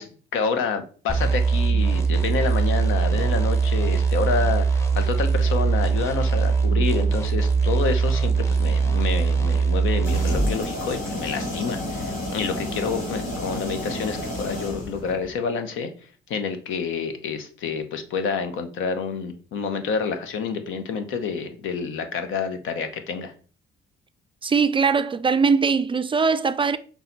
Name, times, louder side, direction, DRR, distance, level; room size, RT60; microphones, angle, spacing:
voice 1, 0.0-15.9 16.3-23.3, left 5 dB, 80° left, 0.8 m, -28 dB
sound 1, 1.1-10.5, right 5 dB, 15° left, 0.8 m, -21 dB
sound 2, 10.0-15.3, left 1 dB, 45° left, 2.3 m, -31 dB
voice 2, 24.4-26.8, right 5 dB, 25° right, 0.3 m, -21 dB
5.7 x 2.4 x 3.8 m
cardioid pair, 90°, 20 cm